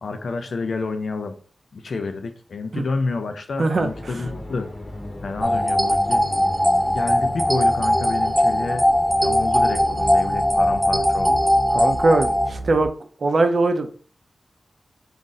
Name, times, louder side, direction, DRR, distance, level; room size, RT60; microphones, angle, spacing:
voice 1, 0.0-1.4 1.7-4.7 5.2-6.2 6.8-8.9 9.1-11.5, left 3 dB, 75° left, 7 dB, 0.5 m, -29 dB
voice 2, 3.6-3.9 11.7-12.9 13.2-13.9, right 2 dB, 60° right, 7 dB, 0.5 m, -20 dB
sound 1, 3.8-12.9, left 1 dB, 40° left, 0.9 m, -34 dB
sound 2, 5.4-12.5, equal, 5° right, 0.5 m, -20 dB
3.7 x 2.6 x 3.9 m, 0.44 s
wide cardioid pair, 95°, 0 cm